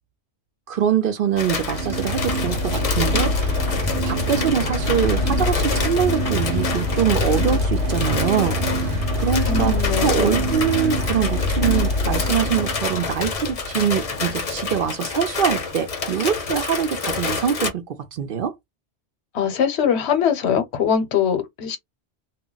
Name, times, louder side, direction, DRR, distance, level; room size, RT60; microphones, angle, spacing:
voice 1, 0.7-3.6 4.0-18.5, right 8 dB, 60° right, 0.7 m, -24 dB
sound 1, 1.4-17.7, left 4 dB, 40° left, 0.6 m, -28 dB
sound 2, 1.4-13.2, left 1 dB, 85° right, 0.9 m, -25 dB
sound 3, 2.2-13.6, left 2 dB, 5° left, 0.8 m, -32 dB
voice 2, 9.5-10.5 19.3-21.8, left 7 dB, 80° left, 1.0 m, -22 dB
2.3 x 2.1 x 3.7 m
omnidirectional pair, 1.1 m